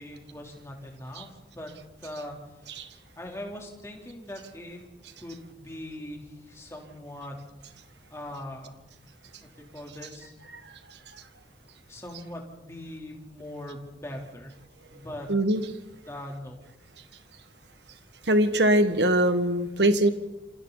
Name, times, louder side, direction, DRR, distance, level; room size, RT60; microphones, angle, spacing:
voice 1, 0.0-1.7 2.0-2.4 3.2-4.8 5.2-7.4 8.1-8.8 9.4-10.3 11.9-14.6 14.9-15.3 16.1-16.6, left 1 dB, 15° left, 0 dB, 3.5 m, -41 dB
voice 2, 15.3-15.6 18.3-20.1, right 1 dB, 80° right, 8 dB, 1.8 m, -22 dB
27.5 x 27.0 x 4.1 m, 1.0 s
head